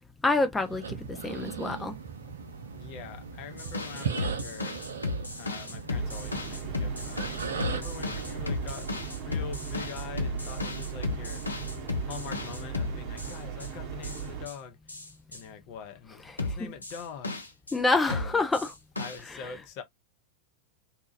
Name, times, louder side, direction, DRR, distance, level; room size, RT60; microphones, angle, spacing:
voice 1, 0.2-2.0 16.6-16.7 17.7-18.7 19.3-19.4, left 3 dB, 10° left, 0.3 m, -27 dB
sound 1, 0.6-8.7, right 6 dB, 70° right, 0.5 m, -38 dB
voice 2, 2.7-4.8 5.3-11.4 12.0-14.8 15.3-17.4 18.1-18.4 19.0-19.8, left 7 dB, 45° left, 0.7 m, -44 dB
sound 2, 3.6-13.7 14.0-14.5 14.9-15.4 16.4-17.8 18.1-19.2, left 2 dB, 80° left, 0.5 m, -34 dB
sound 3, 5.9-14.5, right 7 dB, 40° right, 0.8 m, -38 dB
2.8 x 2.3 x 2.4 m
figure-of-eight pair, 90°, 0 cm